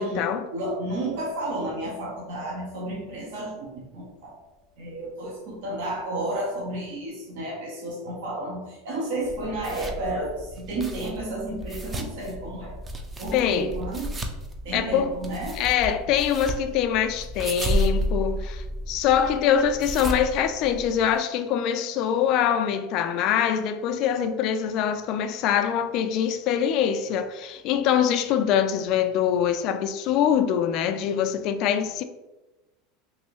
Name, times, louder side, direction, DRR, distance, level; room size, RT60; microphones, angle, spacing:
voice 1, 0.0-0.5 13.3-13.7 14.7-15.1 15.6-32.0, left 9 dB, 55° left, 0.3 m, -24 dB
voice 2, 0.5-4.3 4.8-12.7 13.2-14.1 14.6-15.6, right 1 dB, 75° right, 0.8 m, -32 dB
Piano, 1.1-7.0, left 1 dB, 45° right, 1.1 m, -47 dB
sound 1, 9.2-21.2, equal, 20° right, 0.4 m, -32 dB
3.1 x 2.7 x 3.0 m
supercardioid pair, 110°, 0 cm